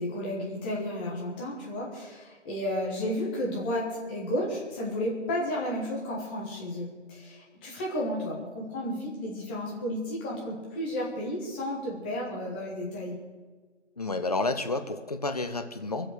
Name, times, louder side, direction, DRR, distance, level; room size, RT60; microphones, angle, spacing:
voice 1, 0.0-13.2, left 1 dB, 10° left, -3 dB, 1.4 m, -32 dB
voice 2, 14.0-16.1, left 2 dB, 30° left, 8 dB, 0.8 m, -30 dB
22.5 x 7.8 x 6.5 m, 1.5 s
figure-of-eight pair, 150°, 37 cm